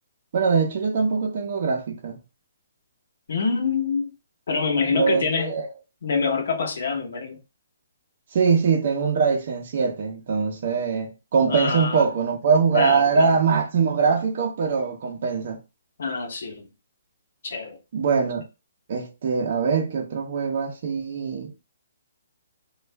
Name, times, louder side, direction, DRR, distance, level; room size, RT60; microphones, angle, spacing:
voice 1, 0.3-2.2 4.8-5.7 8.3-15.6 17.9-18.4 18.9-21.5, right 5 dB, 40° right, 0.7 m, -22 dB
voice 2, 3.3-4.1 4.5-5.5 6.0-7.4 11.5-12.1 12.7-13.4 16.0-16.7 17.4-17.8, left 5 dB, 55° left, 1.0 m, -25 dB
3.2 x 2.4 x 3.4 m
hypercardioid pair, 175°, 0 cm